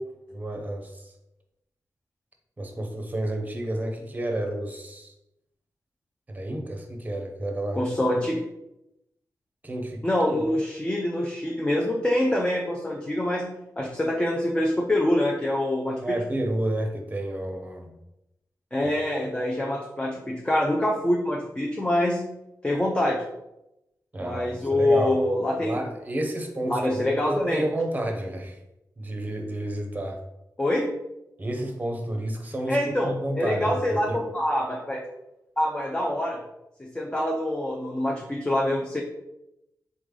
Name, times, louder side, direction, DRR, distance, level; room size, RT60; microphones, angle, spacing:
voice 1, 0.3-1.0 2.6-5.1 6.3-7.8 9.6-10.0 16.0-18.0 24.1-25.2 25.6-28.6 29.0-30.2 31.4-34.2, right 1 dB, 25° right, 3 dB, 0.7 m, -30 dB
voice 2, 7.7-8.4 10.0-13.4 13.8-16.2 18.7-22.2 22.6-23.2 24.2-25.8 26.7-27.6 30.6-30.9 32.7-35.0 35.6-36.4 36.8-39.0, left 1 dB, 15° left, -1 dB, 0.5 m, -25 dB
4.0 x 3.2 x 3.7 m, 0.89 s
wide cardioid pair, 100°, 7 cm